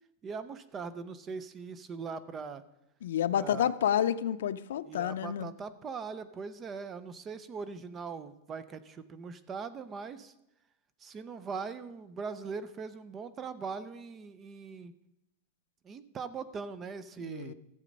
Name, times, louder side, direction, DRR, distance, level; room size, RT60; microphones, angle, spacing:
voice 1, 0.2-2.6 3.4-3.7 4.8-10.3 11.0-14.9 15.8-17.5, right 5 dB, 15° right, 0.5 m, -41 dB
voice 2, 3.0-5.5 17.2-17.5, left 10 dB, 85° left, 0.5 m, -29 dB
14.0 x 7.6 x 5.2 m
supercardioid pair, 175°, 0 cm